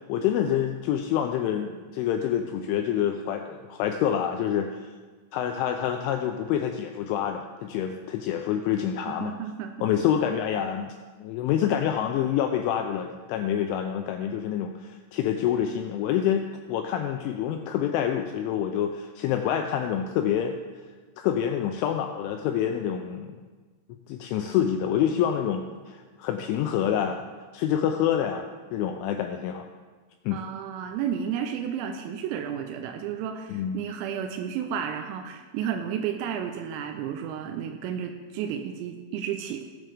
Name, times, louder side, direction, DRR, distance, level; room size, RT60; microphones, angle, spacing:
voice 1, 0.1-4.9 5.3-9.4 9.8-11.0 11.2-20.6 21.2-23.4 24.1-27.2 27.5-28.5 28.7-29.6 30.3-30.4 33.5-33.8, left 9 dB, 85° left, 5 dB, 2.7 m, -27 dB
voice 2, 9.1-9.9 30.3-39.6, right 8 dB, 90° right, 4 dB, 3.4 m, -32 dB
19.0 x 7.6 x 3.4 m, 1.4 s
omnidirectional pair, 6.0 m